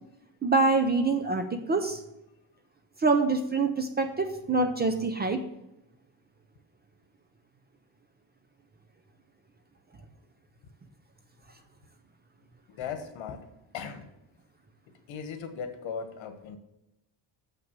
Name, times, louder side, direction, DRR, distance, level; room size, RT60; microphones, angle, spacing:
voice 1, 0.4-2.0 3.0-5.4, right 3 dB, 20° right, 6 dB, 0.5 m, -25 dB
voice 2, 12.7-13.5 13.7-14.1 15.1-16.6, left 6 dB, 70° left, 8 dB, 1.4 m, -37 dB
6.9 x 5.9 x 7.4 m, 0.90 s
cardioid pair, 175°, 47 cm